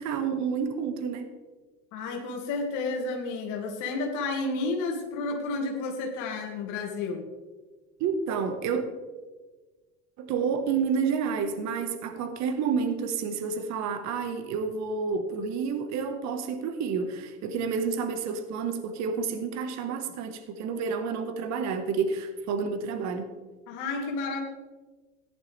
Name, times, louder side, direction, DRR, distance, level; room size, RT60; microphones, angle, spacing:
voice 1, 0.0-1.3 8.0-8.8 10.2-23.3, right 5 dB, 50° right, 7 dB, 1.5 m, -29 dB
voice 2, 1.9-7.3 23.7-24.4, left 3 dB, 60° left, 1 dB, 2.1 m, -31 dB
14.0 x 11.0 x 3.4 m, 1.3 s
hypercardioid pair, 85°, 35 cm